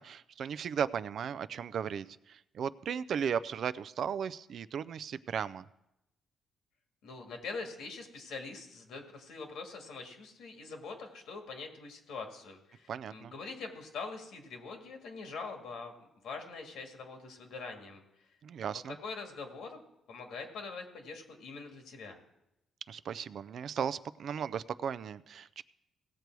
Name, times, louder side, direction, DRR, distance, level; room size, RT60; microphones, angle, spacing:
voice 1, 0.0-5.6 12.9-13.3 18.4-19.0 22.9-25.6, right 7 dB, 60° right, 17 dB, 0.4 m, -36 dB
voice 2, 7.0-15.9 16.2-18.0 18.9-19.8 20.1-22.2, left 4 dB, 80° left, 3 dB, 1.9 m, -43 dB
17.0 x 6.8 x 4.6 m, 0.88 s
cardioid pair, 90°, 0 cm